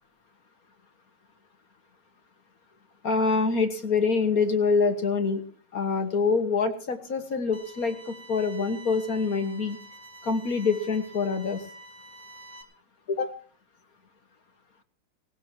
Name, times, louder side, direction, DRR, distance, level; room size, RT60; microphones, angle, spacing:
voice 1, 3.0-5.4 5.7-9.8 10.2-11.6 13.1-13.3, left 4 dB, 45° left, 7 dB, 1.7 m, -25 dB
sound 1, 7.5-12.6, right 1 dB, 15° right, 2.5 m, -47 dB
19.5 x 18.0 x 2.9 m, 0.40 s
omnidirectional pair, 2.4 m